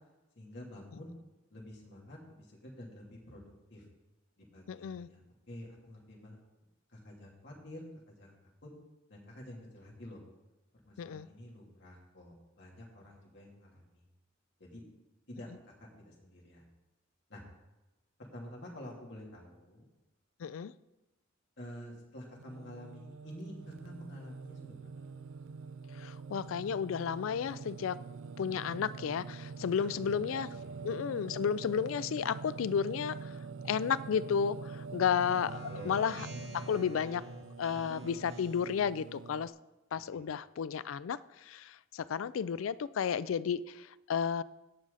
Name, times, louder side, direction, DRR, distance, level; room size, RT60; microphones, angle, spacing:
voice 1, 0.3-1.1 1.5-3.8 4.4-6.4 6.9-8.7 9.1-10.2 10.8-14.1 14.6-14.9 15.3-15.5 15.8-16.6 17.3-17.4 18.3-19.8 21.6-25.1 29.8-30.2 30.5-30.8 35.7-36.2, left 1 dB, 60° left, -2 dB, 3.0 m, -49 dB
voice 2, 4.7-5.1 11.0-11.3 20.4-20.7 26.0-28.0 28.4-30.5 30.8-33.3 33.6-36.3 36.5-37.2 37.6-39.5 39.9-44.4, left 7 dB, 90° left, 17 dB, 0.4 m, -33 dB
Singing, 22.4-39.5, right 5 dB, 70° right, 0.4 m, -45 dB
Speech synthesizer, 35.5-38.8, equal, 90° right, 4.0 m, -48 dB
17.0 x 6.2 x 4.0 m, 1.0 s
head